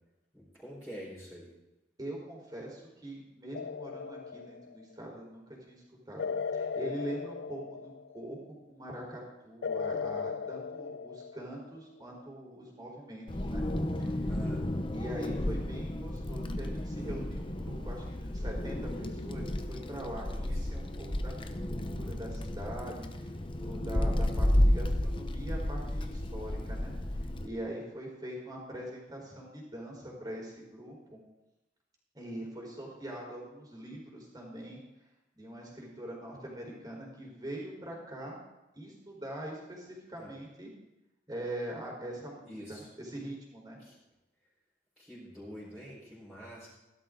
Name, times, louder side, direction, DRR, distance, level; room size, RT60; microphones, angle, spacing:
voice 1, 0.3-1.5 14.3-14.7 20.3-20.6 40.2-40.3 42.5-42.9 43.8-44.0 45.0-46.7, equal, ahead, -11 dB, 4.7 m, -46 dB
voice 2, 2.0-8.4 8.7-13.6 14.0-14.4 14.9-21.3 21.7-31.2 32.1-34.8 35.3-38.4 38.7-40.7 41.3-43.8, right 1 dB, 20° right, -2 dB, 4.3 m, -43 dB
sound 1, 3.5-4.9 6.2-8.3 9.6-11.8, left 5 dB, 80° left, 0.3 m, -37 dB
Wind, 13.3-27.5, left 1 dB, 30° left, 0.8 m, -32 dB
16.0 x 12.0 x 3.9 m, 1.0 s
head